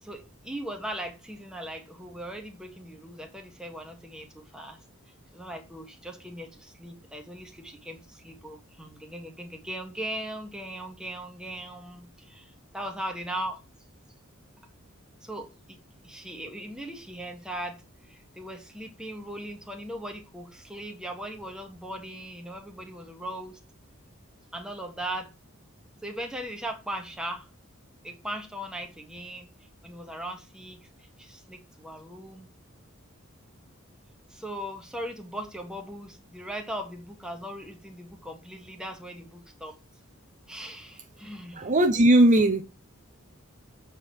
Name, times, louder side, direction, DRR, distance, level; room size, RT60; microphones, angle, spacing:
voice 1, 0.0-4.8 5.3-13.6 15.2-15.8 16.0-23.6 24.5-25.3 26.0-27.5 28.0-29.5 29.8-32.5 34.3-39.7 40.5-41.7, right 1 dB, 5° right, 1.6 m, -39 dB
voice 2, 41.5-42.6, right 1 dB, 35° right, 0.8 m, -18 dB
7.6 x 4.5 x 6.5 m
head